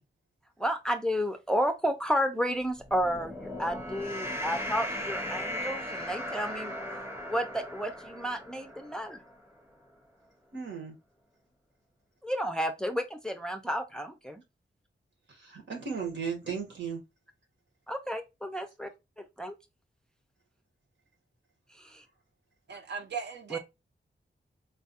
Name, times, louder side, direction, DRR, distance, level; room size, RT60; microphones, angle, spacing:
voice 1, 0.6-6.7 7.3-9.2 12.2-14.4 17.9-18.9 19.2-19.5 21.8-22.0 23.5-23.6, equal, 5° left, 0.4 m, -32 dB
sound 1, 2.8-9.3, left 1 dB, 15° right, 0.8 m, -37 dB
voice 2, 10.5-10.9 15.3-17.0, right 6 dB, 85° right, 1.3 m, -36 dB
voice 3, 22.7-23.6, right 6 dB, 70° right, 0.7 m, -37 dB
3.9 x 2.3 x 2.7 m
wide cardioid pair, 140°, 19 cm